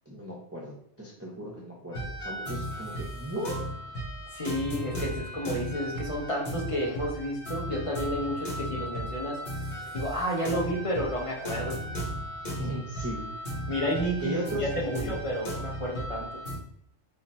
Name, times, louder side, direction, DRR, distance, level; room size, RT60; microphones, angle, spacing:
voice 1, 0.1-3.7 12.6-13.3 14.2-15.2, equal, 15° right, -3 dB, 0.7 m, -36 dB
sound 1, 1.9-16.6, equal, 55° left, 1.5 m, -36 dB
voice 2, 4.3-9.4 9.9-11.8 13.7-16.3, equal, 30° left, -4 dB, 0.9 m, -31 dB
3.8 x 2.6 x 4.2 m, 0.71 s
omnidirectional pair, 1.3 m